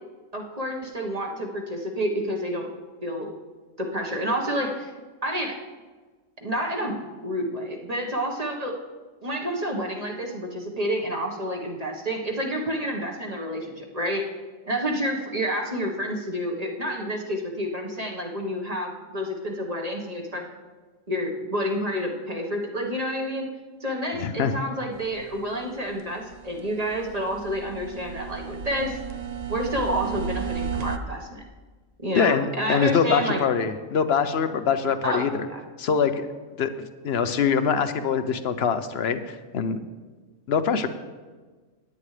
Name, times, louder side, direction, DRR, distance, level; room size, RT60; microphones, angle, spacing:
voice 1, 0.3-2.7 3.0-3.3 3.8-4.9 5.2-5.6 6.4-7.0 7.2-8.7 9.2-14.2 14.6-20.4 21.1-23.5 23.8-29.0 29.5-31.4 32.0-33.4 35.0-35.2 35.5-35.6 36.8-36.9, equal, 30° right, 1 dB, 1.4 m, -29 dB
voice 2, 24.2-24.5 32.1-35.5 35.8-36.3 36.6-36.7 37.0-39.8 40.5-40.9, left 6 dB, 55° left, 10 dB, 0.9 m, -24 dB
sound 1, 24.9-31.0, right 6 dB, 50° right, 0.5 m, -34 dB
16.5 x 9.9 x 3.3 m, 1.4 s
omnidirectional pair, 1.4 m